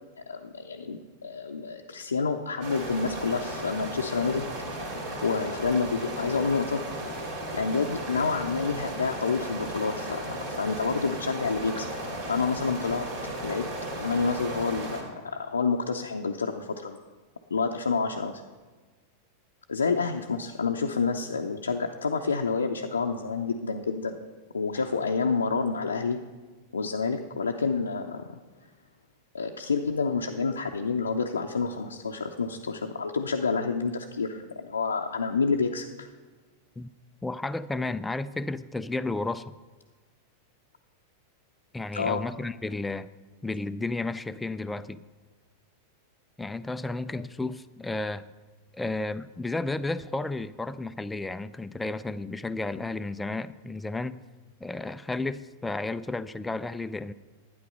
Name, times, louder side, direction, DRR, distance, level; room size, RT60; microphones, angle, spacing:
voice 1, 0.3-4.5 5.2-6.8 7.5-11.9 12.2-13.1 13.4-13.6 13.9-17.0 17.5-18.4 19.7-24.2 24.5-26.2 26.7-28.4 29.3-36.1 41.9-42.2, left 4 dB, 75° left, 0.6 m, -28 dB
sound 1, 2.6-15.0, right 1 dB, 50° right, 2.9 m, -35 dB
voice 2, 37.2-39.5 41.7-43.1 43.4-45.0 46.4-48.3 48.7-54.2 54.6-57.1, left 2 dB, 10° left, 0.4 m, -32 dB
12.0 x 9.5 x 5.4 m
figure-of-eight pair, 90°, 0 cm